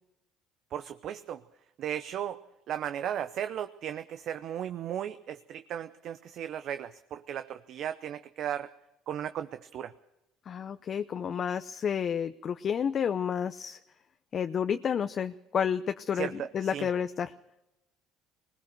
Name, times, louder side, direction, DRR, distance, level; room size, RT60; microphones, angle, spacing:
voice 1, 0.7-1.4 1.8-2.4 2.7-8.7 9.1-9.9 16.1-16.9, right 10 dB, 60° right, 10 dB, 0.8 m, -36 dB
voice 2, 10.5-13.8 14.3-17.3, left 7 dB, 45° left, 9 dB, 0.7 m, -30 dB
20.5 x 19.5 x 6.6 m, 0.92 s
supercardioid pair, 80°, 0 cm